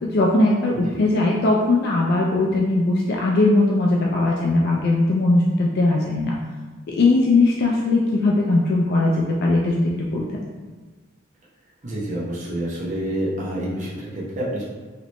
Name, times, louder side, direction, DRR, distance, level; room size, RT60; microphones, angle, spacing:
voice 1, 0.0-6.3 6.9-10.2, left 2 dB, 50° left, -2 dB, 0.4 m, -19 dB
voice 2, 11.8-14.6, right 1 dB, 40° right, -6 dB, 0.7 m, -28 dB
3.1 x 2.9 x 3.0 m, 1.3 s
head